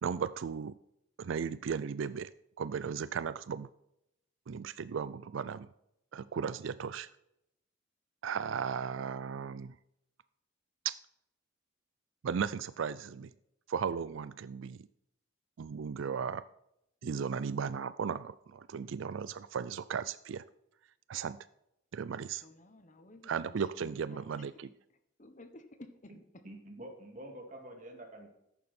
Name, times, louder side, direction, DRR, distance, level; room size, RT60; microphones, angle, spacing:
voice 1, 0.0-0.7 1.2-2.3 2.6-3.7 4.5-5.7 6.1-7.1 8.2-9.8 10.8-11.0 12.2-13.3 13.7-14.8 15.6-16.4 17.0-20.4 21.1-21.4 21.9-22.4 23.3-24.7, right 6 dB, 70° right, 15 dB, 0.4 m, -36 dB
voice 2, 22.4-24.7 25.2-26.4, left 1 dB, 35° left, 8 dB, 1.2 m, -54 dB
voice 3, 26.4-28.3, right 1 dB, 40° right, 2 dB, 2.6 m, -47 dB
14.0 x 11.0 x 4.3 m, 0.82 s
head